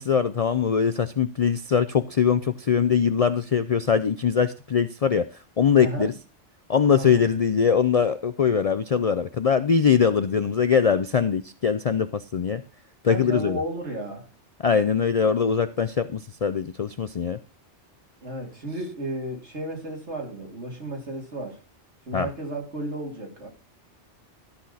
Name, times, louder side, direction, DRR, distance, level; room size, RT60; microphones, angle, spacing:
voice 1, 0.0-5.2 5.6-6.1 6.7-12.6 13.0-13.6 14.6-17.4 22.1-22.3, left 7 dB, 55° left, 0.4 m, -22 dB
voice 2, 5.8-6.1 6.9-7.2 13.1-14.3 18.2-21.6 22.1-23.5, right 1 dB, 70° right, 3.2 m, -33 dB
13.0 x 6.3 x 4.1 m
omnidirectional pair, 1.2 m